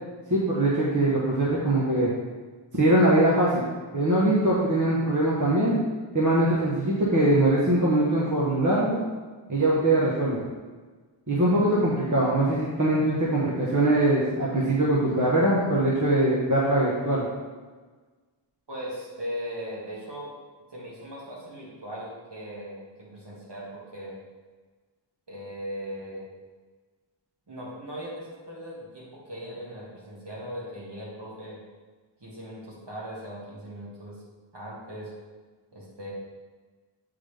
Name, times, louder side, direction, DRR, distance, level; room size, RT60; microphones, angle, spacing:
voice 1, 0.3-2.1 2.7-3.6 3.9-5.8 6.1-9.0 9.5-10.4 11.3-17.2, right 1 dB, 40° right, -7 dB, 1.2 m, -22 dB
voice 2, 18.7-20.3 20.7-24.1 25.3-26.3 27.5-31.6 32.2-34.2 34.5-35.1 35.7-36.1, equal, 55° right, -5 dB, 1.9 m, -38 dB
8.2 x 4.0 x 3.4 m, 1.4 s
wide cardioid pair, 50°, 48 cm